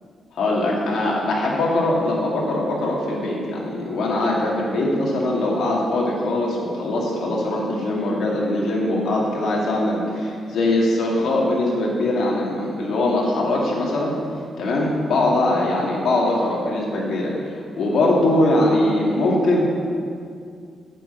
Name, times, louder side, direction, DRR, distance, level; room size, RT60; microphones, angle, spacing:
voice 1, 0.3-14.1 14.6-19.7, left 1 dB, 65° left, -3 dB, 2.3 m, -21 dB
9.0 x 6.2 x 8.2 m, 2.3 s
wide cardioid pair, 160°, 0 cm